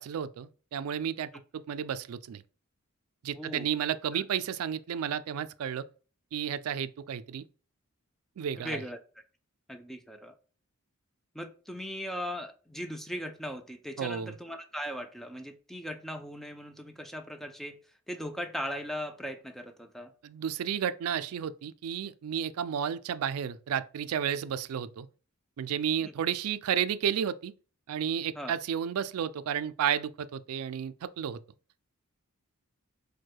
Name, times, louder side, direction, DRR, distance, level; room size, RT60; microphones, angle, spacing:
voice 1, 0.0-2.4 3.2-5.9 6.3-7.4 8.4-8.8 14.0-14.3 20.2-25.1 25.6-27.5 27.9-31.4, right 8 dB, 85° right, 0.3 m, -32 dB
voice 2, 3.3-3.7 4.1-4.2 8.6-9.0 9.7-10.3 11.3-17.8 18.1-20.1 26.0-26.1 28.4-28.5, equal, ahead, 0.4 m, -38 dB
4.5 x 2.2 x 4.5 m
head